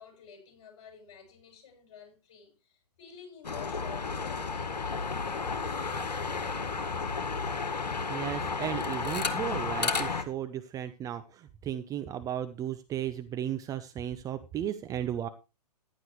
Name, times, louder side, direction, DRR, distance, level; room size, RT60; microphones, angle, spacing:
voice 1, 0.0-7.5, left 7 dB, 45° left, 7.9 m, -51 dB
sound 1, 3.4-10.2, left 4 dB, 80° left, 1.7 m, -32 dB
voice 2, 8.1-15.3, right 10 dB, 15° right, 0.8 m, -35 dB
15.0 x 11.5 x 3.2 m
figure-of-eight pair, 125°, 21 cm